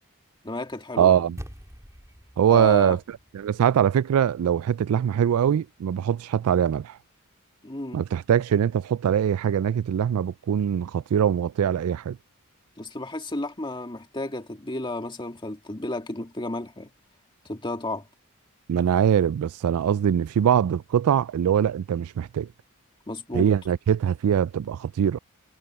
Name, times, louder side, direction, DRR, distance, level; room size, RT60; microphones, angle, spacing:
voice 1, 0.4-1.2 2.5-3.0 7.6-8.0 12.8-16.9 17.5-18.1 23.1-23.5, left 2 dB, 20° left, 1.9 m, -32 dB
voice 2, 1.0-1.4 2.4-3.0 3.3-7.0 7.9-12.2 18.7-22.5 23.3-25.2, right 8 dB, 70° right, 0.3 m, -22 dB
sound 1, 1.4-5.9, equal, 15° right, 4.0 m, -47 dB
head